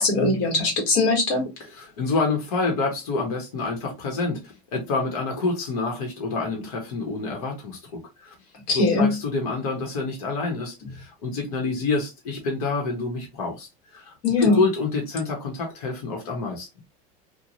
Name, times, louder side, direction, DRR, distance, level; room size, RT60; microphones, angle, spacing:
voice 1, 0.0-1.4 8.7-9.1 14.2-14.6, left 3 dB, 55° left, 1.4 m, -20 dB
voice 2, 1.7-8.3 8.7-13.7 13.9-16.7, left 3 dB, 90° left, 1.1 m, -27 dB
3.0 x 2.3 x 2.6 m
cardioid pair, 180°, 19 cm